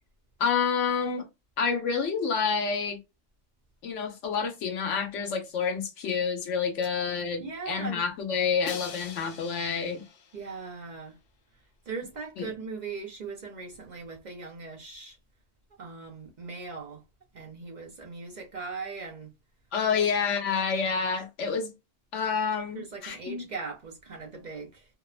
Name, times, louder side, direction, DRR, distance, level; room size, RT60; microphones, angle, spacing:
voice 1, 0.4-1.3 1.6-3.0 3.8-10.0 12.4-12.5 19.7-21.7 22.1-23.4, left 6 dB, 85° left, 1.1 m, -28 dB
voice 2, 7.4-8.0 10.3-11.1 11.9-15.2 15.8-17.0 17.3-19.3 19.9-20.0 22.7-24.9, right 4 dB, 50° right, 0.5 m, -39 dB
Crash cymbal, 8.7-10.7, left 6 dB, 60° left, 0.7 m, -43 dB
2.8 x 2.1 x 2.3 m
omnidirectional pair, 1.2 m